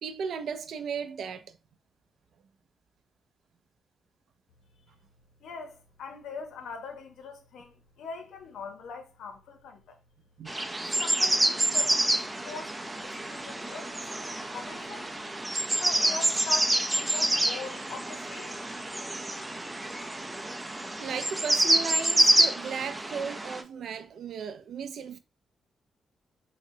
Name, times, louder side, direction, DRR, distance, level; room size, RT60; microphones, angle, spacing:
voice 1, 0.0-1.6 10.4-10.6 21.0-25.2, right 6 dB, 75° right, 0.4 m, -36 dB
voice 2, 5.4-10.0 10.6-12.1 12.4-15.1 15.7-18.7, left 4 dB, 90° left, 0.6 m, -42 dB
sound 1, 10.5-23.6, right 1 dB, 15° right, 0.4 m, -27 dB
3.7 x 2.1 x 2.7 m
cardioid pair, 80°, 0 cm